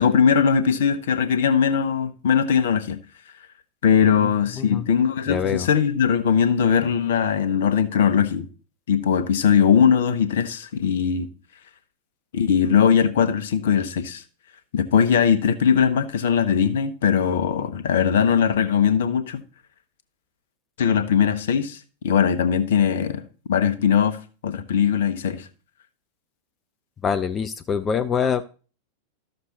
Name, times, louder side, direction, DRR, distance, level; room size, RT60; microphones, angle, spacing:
voice 1, 0.0-3.0 3.8-8.5 8.9-11.3 12.3-14.2 14.7-19.4 20.8-21.8 22.0-23.2 23.5-25.5, left 7 dB, 60° left, 1.0 m, -20 dB
voice 2, 5.3-5.7 27.0-28.4, left 7 dB, 20° left, 0.6 m, -25 dB
13.0 x 6.7 x 4.0 m
figure-of-eight pair, 90°, 0 cm